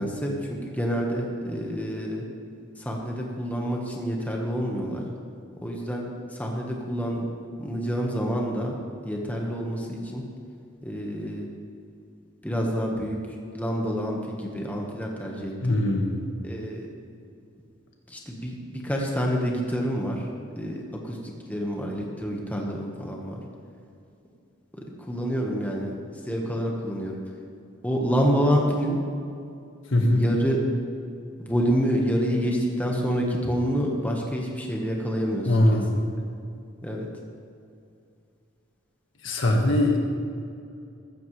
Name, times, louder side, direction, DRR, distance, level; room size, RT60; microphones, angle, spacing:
voice 1, 0.0-2.2 2.8-5.0 5.6-6.0 6.4-7.2 7.6-8.8 9.0-10.2 10.8-11.5 12.4-13.2 13.5-15.7 16.4-16.9 18.1-20.2 20.6-23.4 25.1-25.9 26.3-27.2 27.8-29.0 30.1-30.6 31.4-35.8 36.8-37.1, equal, 10° left, -1 dB, 1.4 m, -27 dB
voice 2, 15.6-16.2 29.9-30.2 35.4-35.9 39.2-40.0, left 1 dB, 70° left, 1 dB, 1.7 m, -21 dB
15.0 x 13.0 x 3.3 m, 2.5 s
head